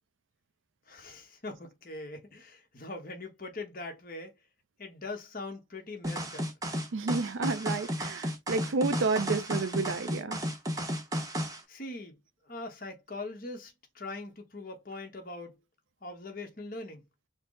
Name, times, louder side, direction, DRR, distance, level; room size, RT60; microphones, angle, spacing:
voice 1, 0.9-4.3 4.8-6.5 11.7-12.1 12.5-15.6 16.0-17.0, left 2 dB, 45° left, 1.0 m, -41 dB
sound 1, 6.0-11.6, equal, 15° right, 0.7 m, -33 dB
voice 2, 6.9-10.4, right 3 dB, 75° right, 0.5 m, -30 dB
4.4 x 2.0 x 3.6 m
head